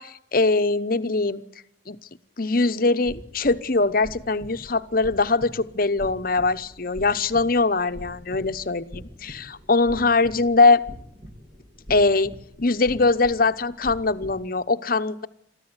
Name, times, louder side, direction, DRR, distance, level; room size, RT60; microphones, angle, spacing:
voice 1, 0.0-1.4 1.9-2.0 2.4-10.8 11.9-15.3, left 3 dB, 50° left, 11 dB, 1.0 m, -22 dB
sound 1, 3.0-14.5, equal, 40° right, 3.4 m, -43 dB
23.0 x 14.0 x 9.7 m, 0.71 s
head